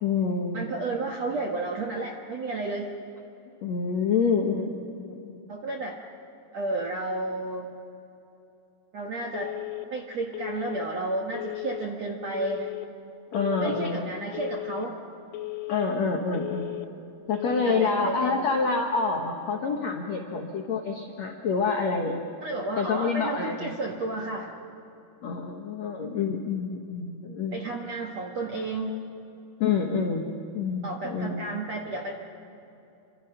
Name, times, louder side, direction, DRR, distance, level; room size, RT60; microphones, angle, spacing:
voice 1, 0.0-0.7 3.6-5.5 13.3-14.2 15.7-16.7 17.3-22.2 22.8-23.7 25.2-27.6 29.6-30.3 30.5-31.5, left 5 dB, 70° left, 2 dB, 1.6 m, -27 dB
voice 2, 0.5-2.9 5.5-6.0 6.5-7.7 8.9-9.5 9.9-12.7 13.6-15.0 17.7-18.4 22.4-24.5 27.5-29.0 30.8-32.1, right 2 dB, 60° right, 0 dB, 1.8 m, -32 dB
Telephone, 9.3-9.9 10.3-10.9 11.3-11.9 12.3-12.9 13.3-13.9 14.3-14.9 15.3-15.9 16.3-16.9 17.3-17.9, left 20 dB, 85° left, 3.5 m, -35 dB
28.5 x 25.5 x 5.8 m, 2.8 s
omnidirectional pair, 5.2 m